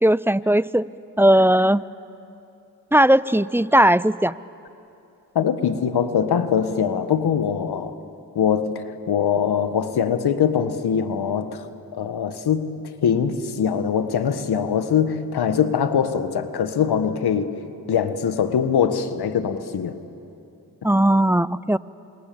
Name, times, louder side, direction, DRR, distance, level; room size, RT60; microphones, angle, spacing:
voice 1, 0.0-0.8 1.2-1.8 2.9-4.3 20.8-21.8, right 1 dB, 5° right, 18 dB, 0.6 m, -17 dB
voice 2, 5.3-8.0 8.3-11.7 11.9-12.7 13.0-17.6 17.9-20.0, left 7 dB, 75° left, 10 dB, 1.7 m, -22 dB
29.0 x 26.5 x 7.2 m, 2.8 s
supercardioid pair, 45°, 39 cm